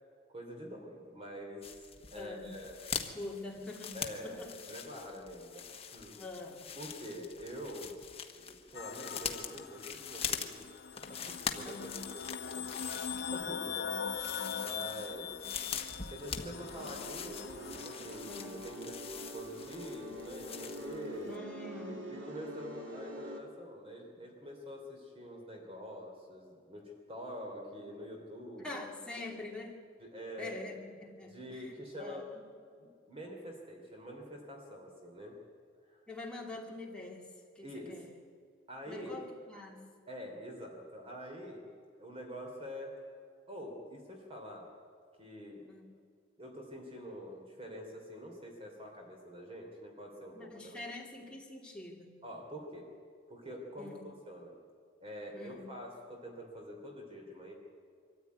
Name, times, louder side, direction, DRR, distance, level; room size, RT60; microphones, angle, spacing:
voice 1, 0.3-2.7 3.9-6.2 6.7-8.0 8.3-10.7 11.1-12.7 13.3-14.2 14.6-15.4 16.1-18.3 18.6-19.0 19.3-21.4 21.8-28.7 30.0-30.7 31.2-32.3 32.8-35.4 35.9-36.0 37.6-38.0 38.7-39.2 40.1-41.7 42.0-43.0 43.5-44.7 45.2-45.7 46.4-50.8 52.2-52.9 53.3-54.6 55.0-57.5, equal, 30° right, 1 dB, 3.1 m, -46 dB
sound 1, 1.6-21.1 21.3-21.4, left 7 dB, 30° left, 1.3 m, -43 dB
voice 2, 2.1-2.5 3.1-4.6 6.1-6.8 11.6-12.0 13.2-13.4 18.3-18.6 21.2-22.1 28.6-29.8 30.4-31.7 32.0-32.4 36.1-38.1 38.9-39.9 45.7-45.8 50.3-52.1 53.8-54.0 55.3-55.6, left 2 dB, 5° left, -2 dB, 2.9 m, -45 dB
sound 2, 8.7-18.5, left 6 dB, 55° left, 0.6 m, -42 dB
sound 3, 16.5-23.4, equal, 70° right, 2.5 m, -45 dB
23.5 x 14.0 x 9.4 m, 2.2 s
head